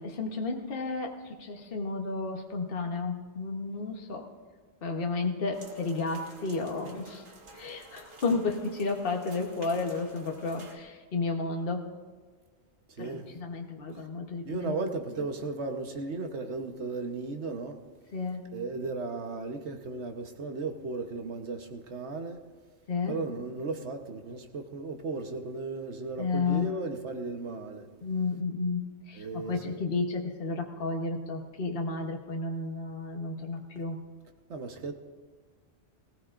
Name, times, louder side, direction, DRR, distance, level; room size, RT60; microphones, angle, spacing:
voice 1, 0.0-4.2 4.8-7.2 7.5-11.9 13.0-14.7 18.1-18.5 22.9-23.1 26.2-26.7 28.0-34.0, left 3 dB, 50° left, 1.3 m, -32 dB
sound 1, 5.5-10.8, right 3 dB, 50° right, 1.4 m, -51 dB
voice 2, 12.9-13.4 13.9-14.1 14.4-17.8 18.5-22.4 23.1-27.9 29.1-29.8 34.5-34.9, right 3 dB, 70° right, 1.4 m, -35 dB
19.0 x 17.0 x 2.5 m
omnidirectional pair, 1.2 m